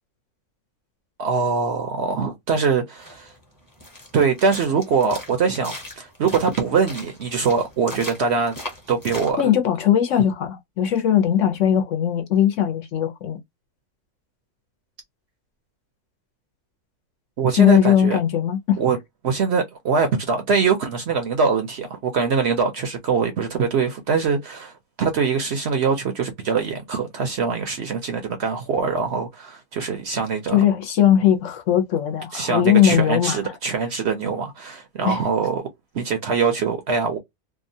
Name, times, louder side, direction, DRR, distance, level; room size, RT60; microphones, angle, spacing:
voice 1, 1.2-3.3 4.1-8.5 8.9-9.5 17.4-18.2 18.8-19.0 19.2-30.6 32.3-35.6 35.9-37.2, right 5 dB, 60° right, 0.8 m, -23 dB
sound 1, 3.0-9.3, left 1 dB, 15° left, 0.9 m, -39 dB
voice 2, 9.4-13.4 17.6-18.8 30.5-33.5 35.0-35.2, left 10 dB, 65° left, 0.9 m, -19 dB
2.8 x 2.3 x 2.6 m
omnidirectional pair, 1.5 m